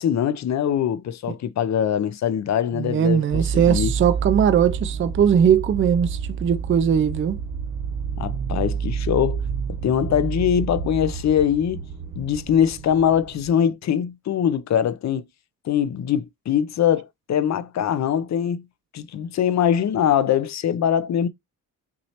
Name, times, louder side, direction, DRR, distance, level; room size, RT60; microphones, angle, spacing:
voice 1, 0.0-3.2 3.5-3.9 8.2-9.4 9.8-11.8 12.2-15.2 15.6-18.6 18.9-21.3, left 9 dB, 55° left, 0.6 m, -22 dB
voice 2, 2.7-7.4, right 8 dB, 40° right, 0.4 m, -20 dB
sound 1, 3.3-13.5, right 6 dB, 65° right, 1.1 m, -29 dB
6.0 x 3.1 x 2.8 m
wide cardioid pair, 145°, 33 cm